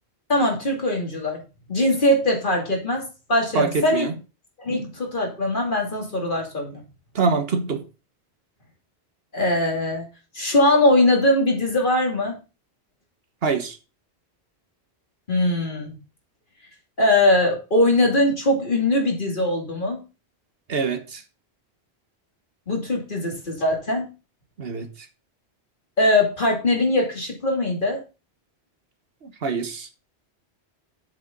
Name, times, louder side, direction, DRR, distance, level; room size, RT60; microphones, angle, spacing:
voice 1, 0.3-1.4 1.7-4.1 4.6-6.8 9.3-10.1 10.3-12.4 15.3-15.9 17.0-20.0 22.7-24.1 26.0-28.0, left 1 dB, 50° left, 2.9 m, -21 dB
voice 2, 3.5-4.1 4.7-4.9 7.1-7.8 13.4-13.8 20.7-21.2 24.6-24.9 29.4-29.9, right 4 dB, 65° right, 1.3 m, -24 dB
7.5 x 6.4 x 5.2 m
omnidirectional pair, 1.1 m